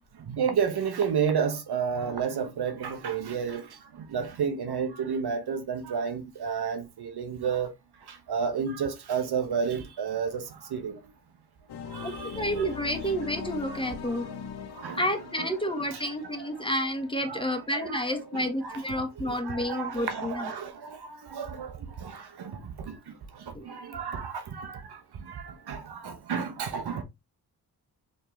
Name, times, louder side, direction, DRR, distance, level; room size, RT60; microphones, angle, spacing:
voice 1, 0.2-7.7 8.0-11.1 11.9-12.7 13.7-14.2 14.7-15.1 15.4-15.5 15.8-16.5 17.2-27.0, right 6 dB, 80° right, 1.1 m, -32 dB
sound 1, 11.7-18.5, left 7 dB, 85° left, 0.8 m, -41 dB
voice 2, 12.0-14.3 14.9-20.5 23.5-23.6, equal, 15° left, 1.5 m, -30 dB
4.4 x 3.6 x 3.2 m
cardioid pair, 65°, 38 cm